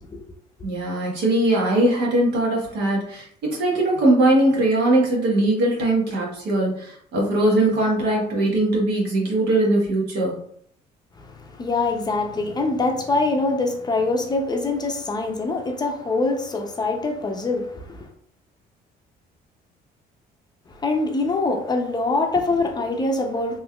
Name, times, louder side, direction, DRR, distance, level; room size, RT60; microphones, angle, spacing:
voice 1, 0.6-10.4, right 1 dB, 75° right, 1.3 m, -20 dB
voice 2, 11.2-18.1 20.7-23.6, left 3 dB, 25° left, 0.5 m, -24 dB
3.3 x 3.0 x 2.3 m
cardioid pair, 110°, 17 cm